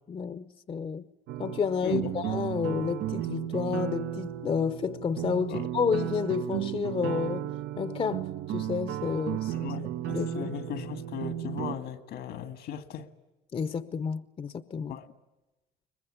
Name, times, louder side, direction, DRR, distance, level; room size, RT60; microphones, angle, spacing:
voice 1, 0.1-1.1 1.4-9.7 10.1-10.5 13.5-15.0, left 6 dB, 35° left, 0.8 m, -31 dB
sound 1, 1.3-11.8, right 12 dB, 80° right, 0.8 m, -34 dB
voice 2, 1.8-2.2 5.5-5.6 9.5-13.1 14.9-15.1, left 8 dB, 75° left, 1.8 m, -37 dB
22.0 x 21.0 x 9.7 m
cardioid pair, 110°, 17 cm